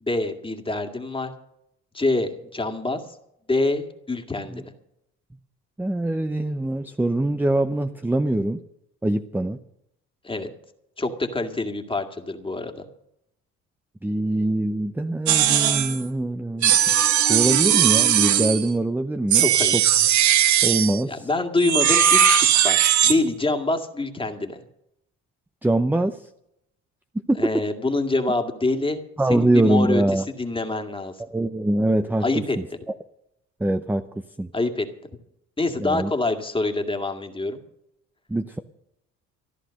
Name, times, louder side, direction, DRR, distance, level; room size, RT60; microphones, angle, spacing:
voice 1, 0.0-1.3 1.9-3.0 3.5-4.7 10.2-10.5 11.0-12.8 19.3-19.8 21.1-22.8 23.1-24.6 27.4-29.0 29.3-31.1 32.2-32.6 34.5-34.9 35.6-37.6, left 2 dB, 15° left, 5 dB, 2.1 m, -25 dB
voice 2, 5.8-8.6 9.0-9.6 14.0-16.9 17.3-19.5 19.7-19.8 20.6-21.3 25.6-26.2 27.3-27.5 29.2-30.2 31.2-32.2 33.6-34.0 34.4-34.5 35.8-36.1 38.3-38.6, right 1 dB, 5° right, 8 dB, 0.7 m, -23 dB
sound 1, 15.3-16.0 16.6-18.7 19.3-21.0 21.6-23.2, right 10 dB, 65° right, 1.2 m, -18 dB
14.5 x 11.5 x 6.5 m, 0.79 s
cardioid pair, 90°, 32 cm